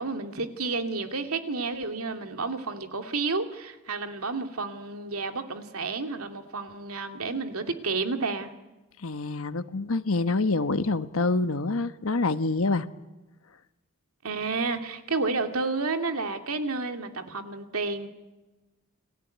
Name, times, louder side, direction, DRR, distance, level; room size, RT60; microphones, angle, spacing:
voice 1, 0.0-8.5 14.2-18.1, right 3 dB, 75° right, 6 dB, 2.5 m, -31 dB
voice 2, 9.0-12.9, left 3 dB, 65° left, 11 dB, 1.2 m, -26 dB
29.5 x 20.5 x 9.3 m, 1.1 s
head